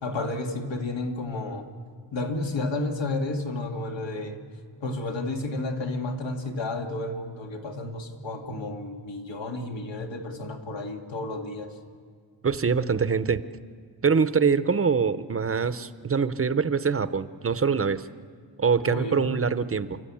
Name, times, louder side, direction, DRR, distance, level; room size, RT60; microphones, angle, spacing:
voice 1, 0.0-1.7 2.1-4.4 4.8-11.8 18.9-19.3, left 2 dB, 90° left, 2 dB, 2.2 m, -31 dB
voice 2, 12.4-13.4 14.0-18.1 18.6-20.0, right 5 dB, 30° right, 13 dB, 0.6 m, -24 dB
29.5 x 12.5 x 8.5 m, 2.1 s
wide cardioid pair, 165°, 43 cm